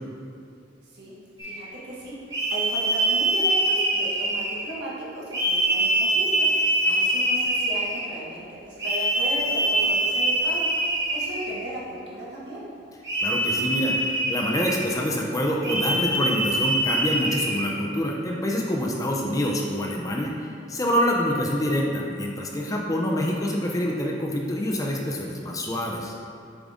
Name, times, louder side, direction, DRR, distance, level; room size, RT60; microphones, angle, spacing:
sound 1, 1.4-1.6 2.3-4.7 5.3-8.1 8.8-11.6 13.0-14.9 15.6-17.7, right 1 dB, 20° right, 1.3 m, -24 dB
voice 1, 1.4-12.6, right 1 dB, 65° right, -7 dB, 1.5 m, -36 dB
voice 2, 13.2-13.9 14.3-26.2, equal, 20° left, -1 dB, 0.5 m, -26 dB
6.9 x 3.8 x 3.6 m, 2.4 s
head